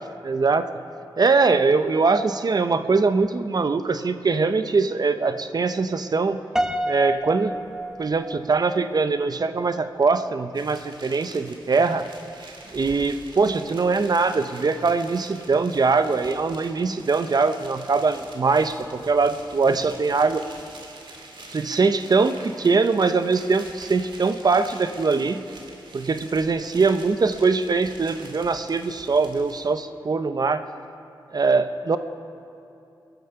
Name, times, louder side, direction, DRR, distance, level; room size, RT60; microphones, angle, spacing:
voice 1, 0.2-0.7 1.2-6.4 6.9-7.6 8.0-12.1 12.7-20.4 21.5-25.4 25.9-30.6 31.3-32.0, right 4 dB, 50° right, 10 dB, 0.7 m, -22 dB
Piano, 6.6-8.8, equal, 5° right, 0.9 m, -28 dB
sound 1, 10.5-29.7, right 2 dB, 75° right, 2.4 m, -45 dB
22.5 x 10.5 x 5.8 m, 2.6 s
wide cardioid pair, 80°, 9 cm